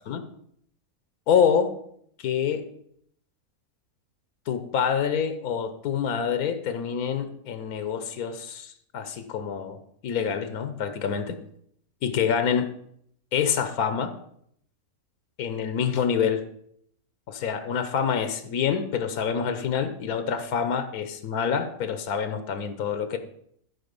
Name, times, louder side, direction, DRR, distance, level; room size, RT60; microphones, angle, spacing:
voice 1, 1.3-1.7 2.2-2.6 4.5-9.8 10.0-11.4 12.0-12.7 13.3-14.1 15.4-16.4 17.3-23.2, left 7 dB, 80° left, 9 dB, 1.4 m, -26 dB
12.0 x 5.0 x 5.3 m, 0.69 s
omnidirectional pair, 1.5 m